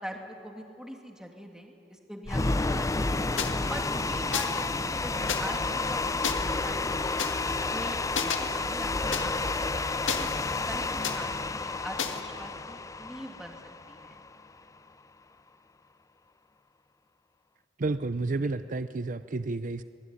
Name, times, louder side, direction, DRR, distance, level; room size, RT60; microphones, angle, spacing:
voice 1, 0.0-3.2 3.7-5.1 5.4-7.1 7.6-13.6 13.9-14.2 18.4-18.5, equal, 5° right, 2 dB, 2.7 m, -42 dB
sound 1, 2.3-14.4, left 3 dB, 15° left, 0.6 m, -30 dB
sound 2, 3.4-3.5 4.3-4.6 5.3-5.4 6.2-6.3 7.2-7.3 8.2-8.4 9.1-9.2 10.1-10.6 11.0-11.2 12.0-12.2, left 7 dB, 80° left, 1.9 m, -30 dB
voice 2, 17.8-19.8, right 3 dB, 40° right, 11 dB, 0.6 m, -31 dB
25.5 x 21.0 x 9.9 m, 2.6 s
head